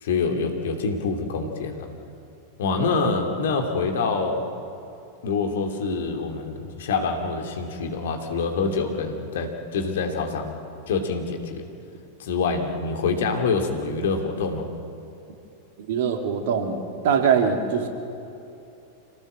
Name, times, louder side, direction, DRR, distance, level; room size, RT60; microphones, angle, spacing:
voice 1, 0.0-1.9 2.6-4.4 5.2-10.5 10.9-11.7 12.2-14.7, left 4 dB, 60° left, 4 dB, 2.9 m, -26 dB
voice 2, 15.9-17.9, right 6 dB, 55° right, 4 dB, 2.8 m, -23 dB
27.0 x 18.5 x 7.6 m, 2.9 s
figure-of-eight pair, 90°, 0 cm